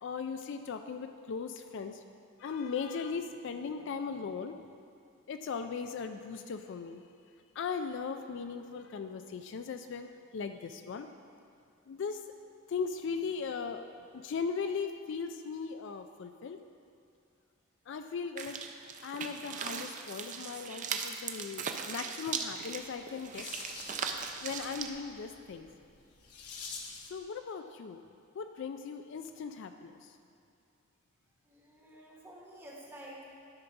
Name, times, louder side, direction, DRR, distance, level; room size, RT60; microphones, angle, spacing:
voice 1, 0.0-2.0 2.4-4.6 5.3-7.0 7.6-11.1 11.9-12.2 12.7-13.8 14.1-16.6 17.9-18.6 19.0-23.5 24.4-25.7 27.0-28.0 28.3-30.1, left 5 dB, 55° left, 7 dB, 0.3 m, -38 dB
sound 1, 18.4-24.9, right 6 dB, 35° right, 0.4 m, -39 dB
sound 2, 22.9-27.2, left 4 dB, 90° left, 1.0 m, -47 dB
voice 2, 31.4-33.3, right 1 dB, 10° right, -4 dB, 1.1 m, -50 dB
11.5 x 4.0 x 5.7 m, 2.5 s
head